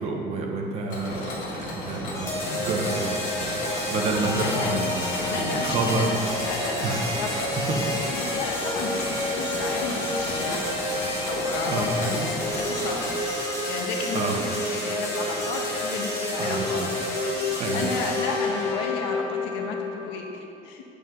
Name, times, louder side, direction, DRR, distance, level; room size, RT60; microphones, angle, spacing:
voice 1, 0.0-1.3 1.7-6.4 6.8-7.9 11.7-12.3 14.1-14.5 16.4-16.9 17.6-17.9, right 3 dB, 35° right, 0 dB, 1.1 m, -29 dB
Mechanisms, 0.9-13.1, left 1 dB, 45° left, 1.8 m, -35 dB
sound 1, 2.1-20.1, left 1 dB, 15° left, 1.7 m, -29 dB
voice 2, 4.4-4.8 5.3-6.9 7.2-7.3 7.6-10.8 11.2-13.0 13.7-16.8 17.7-20.8, left 4 dB, 85° left, 2 dB, 1.3 m, -33 dB
9.1 x 8.5 x 3.9 m, 2.8 s
cardioid pair, 175°, 19 cm